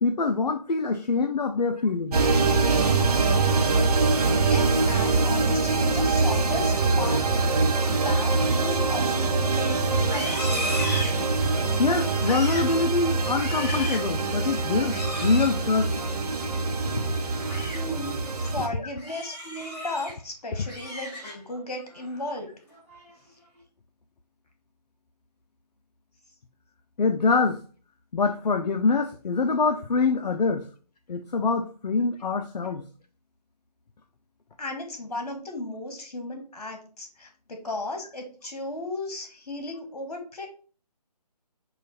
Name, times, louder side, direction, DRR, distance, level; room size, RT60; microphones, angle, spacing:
voice 1, 0.0-2.2 11.8-15.9 17.0-17.1 19.7-19.8 27.0-27.6 28.1-30.7 31.1-32.8, left 4 dB, 80° left, 5 dB, 0.5 m, -25 dB
sound 1, 2.1-18.7, right 3 dB, 65° right, 0.7 m, -24 dB
voice 2, 4.3-7.2 7.5-8.3 8.6-10.7 17.7-18.1 18.4-22.5 32.7-32.8 34.6-40.5, left 2 dB, 65° left, 5 dB, 1.3 m, -35 dB
Livestock farm animals working animals, 10.0-11.6 12.1-12.7 13.2-14.1 14.8-15.5 17.2-17.8 18.2-18.5 19.0-20.1 20.5-21.6 21.9-22.3 22.7-23.1, left 1 dB, 10° left, 1.1 m, -35 dB
5.0 x 2.3 x 4.0 m, 0.40 s
figure-of-eight pair, 160°, 21 cm